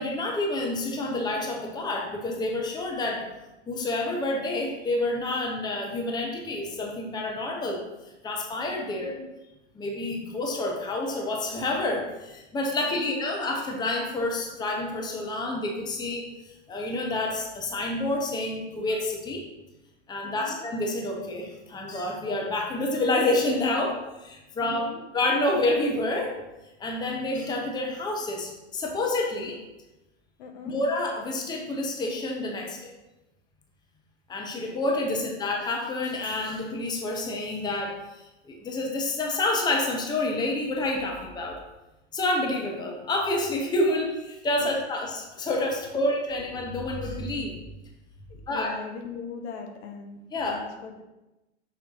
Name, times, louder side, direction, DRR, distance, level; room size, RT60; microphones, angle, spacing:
voice 1, 0.0-3.3 3.7-7.8 8.2-9.2 9.7-19.5 20.1-26.4 26.8-29.6 30.6-32.9 34.3-41.6 42.1-47.6 48.5-48.7 50.3-50.6, left 2 dB, 10° left, 1 dB, 0.8 m, -28 dB
voice 2, 8.9-9.3 12.8-13.2 20.2-20.6 24.6-25.0 30.4-30.8 35.1-35.2 44.6-44.7 45.9-46.0 48.3-51.0, left 5 dB, 60° left, 4 dB, 1.2 m, -41 dB
6.1 x 4.2 x 3.8 m, 0.99 s
hypercardioid pair, 110°, 38 cm